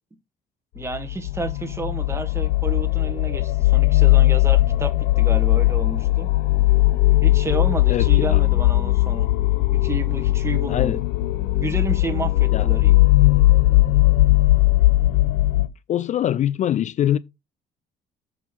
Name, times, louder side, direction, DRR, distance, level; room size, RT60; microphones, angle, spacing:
voice 1, 0.8-6.3 7.2-9.3 9.7-11.0 11.5-12.9, right 3 dB, 15° right, 1.7 m, -31 dB
sound 1, 0.9-15.7, left 18 dB, 85° left, 0.8 m, -18 dB
voice 2, 7.9-8.4 10.7-11.0 12.5-12.7 15.9-17.2, left 11 dB, 45° left, 0.4 m, -23 dB
7.0 x 6.1 x 4.5 m
cardioid pair, 110°, 17 cm